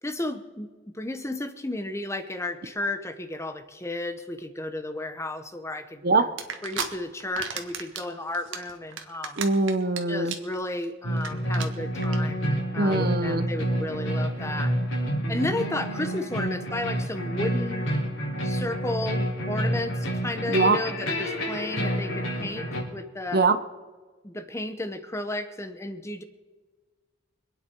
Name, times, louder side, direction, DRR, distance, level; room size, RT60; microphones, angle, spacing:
voice 1, 0.0-6.3 6.6-9.4 10.1-14.7 15.3-17.9 18.4-22.7 22.9-23.5 24.2-26.2, left 2 dB, 15° left, 9 dB, 0.9 m, -33 dB
sound 1, 6.4-6.9 7.2-8.0 8.3-10.0 10.3-10.6 10.8-10.9 11.2-11.3 11.5-11.7 12.0-12.2, right 7 dB, 80° right, 1.6 m, -32 dB
voice 2, 9.4-10.3 12.8-13.5 20.5-20.8 23.3-23.6, right 3 dB, 50° right, 11 dB, 0.9 m, -22 dB
sound 2, 11.0-22.8, right 1 dB, 90° left, 4.1 m, -29 dB
26.0 x 9.4 x 4.6 m, 1.4 s
head